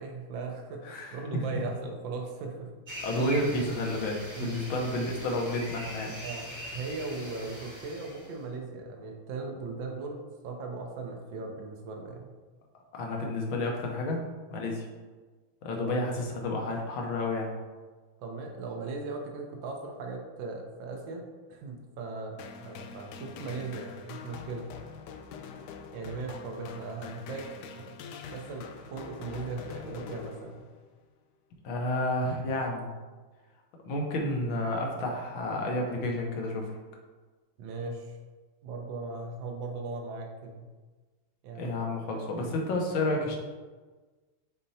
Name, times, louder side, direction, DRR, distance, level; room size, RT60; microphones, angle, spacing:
voice 1, 0.0-2.7 4.3-4.6 6.2-6.5 6.7-12.3 18.2-21.2 21.5-24.7 25.9-28.0 28.3-30.6 37.6-38.1 38.6-40.7 41.4-41.9, right 3 dB, 65° right, 2 dB, 1.5 m, -38 dB
voice 2, 0.8-1.4 3.0-6.1 12.9-14.2 14.5-14.9 15.6-17.5 31.6-32.9 33.9-36.7 41.6-43.4, left 1 dB, 70° left, 1 dB, 1.8 m, -30 dB
sound 1, 2.9-8.4, equal, 15° right, 1.0 m, -42 dB
sound 2, 22.4-30.9, left 6 dB, 85° left, 0.9 m, -45 dB
8.6 x 4.4 x 2.8 m, 1.3 s
omnidirectional pair, 2.4 m